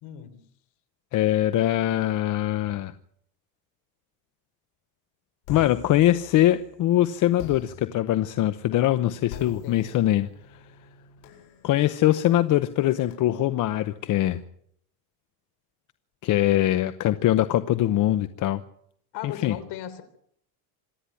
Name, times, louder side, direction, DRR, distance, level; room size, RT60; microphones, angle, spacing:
voice 1, 0.0-0.4 9.6-9.9 19.1-20.0, left 11 dB, 60° left, 10 dB, 3.5 m, -37 dB
voice 2, 1.1-2.9 5.5-10.3 11.6-14.4 16.2-18.6 19.2-19.5, left 13 dB, 45° left, 11 dB, 0.9 m, -22 dB
sound 1, 5.4-6.8 7.4-13.1, left 7 dB, 85° left, 7.8 m, -45 dB
26.5 x 10.0 x 10.0 m, 0.68 s
cardioid pair, 155°, 45 cm